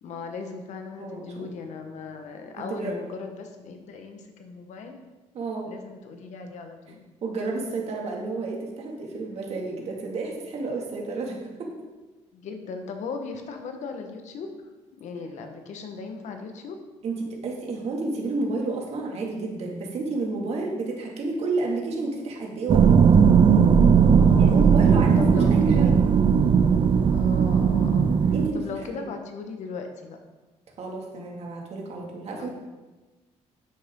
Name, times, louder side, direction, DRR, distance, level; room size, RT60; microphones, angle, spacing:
voice 1, 0.0-4.9 5.6-7.0 12.3-14.6 14.9-16.8 24.0-24.7 25.2-25.9 27.1-28.1 28.5-30.2 32.3-32.5, left 4 dB, 70° left, 5 dB, 1.4 m, -37 dB
voice 2, 1.0-1.5 2.6-3.0 5.3-5.7 7.2-11.7 17.0-22.8 24.4-26.0 28.3-28.6 29.0-29.1 30.8-32.5, right 3 dB, 60° right, -1 dB, 2.3 m, -30 dB
sound 1, 22.7-28.5, right 6 dB, 40° right, 0.6 m, -17 dB
10.5 x 8.4 x 3.8 m, 1.2 s
cardioid pair, 120°, 12 cm